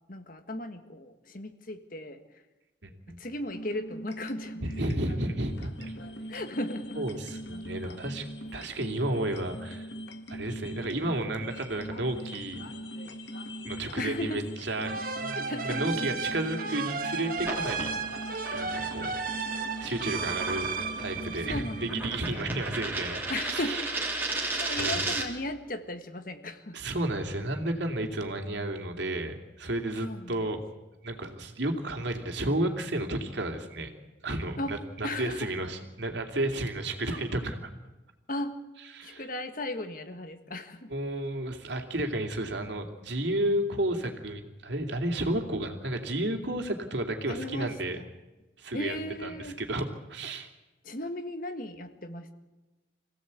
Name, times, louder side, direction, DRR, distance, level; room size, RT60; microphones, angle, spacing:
voice 1, 0.1-2.2 3.2-4.6 4.9-5.0 6.3-7.0 14.0-14.4 15.4-16.3 21.4-22.6 23.3-23.8 24.4-26.8 30.0-30.5 34.6-34.8 35.0-35.5 37.0-37.2 38.3-38.6 39.0-40.9 47.3-48.0 48.7-49.6 50.8-52.3, left 1 dB, 45° left, 8 dB, 1.7 m, -36 dB
voice 2, 2.8-3.2 4.6-5.9 7.0-8.3 8.5-9.9 10.3-12.7 13.7-14.4 14.7-14.9 15.2-17.9 18.5-19.2 19.8-20.7 21.0-23.8 24.8-25.0 26.7-30.6 31.0-33.9 34.2-37.7 38.9-39.2 40.9-48.0 48.6-48.9 49.2-50.5, right 1 dB, 70° right, 4 dB, 2.8 m, -32 dB
sound 1, 3.4-22.2, equal, 70° left, 1.8 m, -42 dB
sound 2, 14.9-22.3, right 5 dB, 50° right, 1.4 m, -34 dB
sound 3, 17.4-25.5, right 2 dB, 10° right, 3.0 m, -35 dB
26.0 x 16.5 x 8.4 m, 1.1 s
head